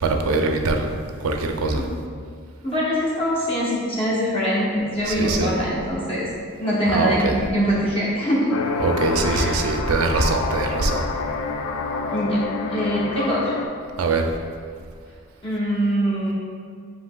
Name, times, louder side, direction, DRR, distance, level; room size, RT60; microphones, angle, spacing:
voice 1, 0.0-0.9 1.2-1.8 5.1-5.5 6.9-7.3 8.8-11.0 14.0-14.3, right 3 dB, 85° right, 4 dB, 0.4 m, -22 dB
voice 2, 2.6-6.3 6.6-8.5 9.3-9.5 10.1-10.3 12.1-12.4 12.7-13.5 15.4-16.3, equal, 25° left, -6 dB, 0.9 m, -23 dB
sound 1, 8.5-13.7, left 4 dB, 75° left, 0.3 m, -28 dB
7.5 x 2.8 x 2.2 m, 2.1 s
head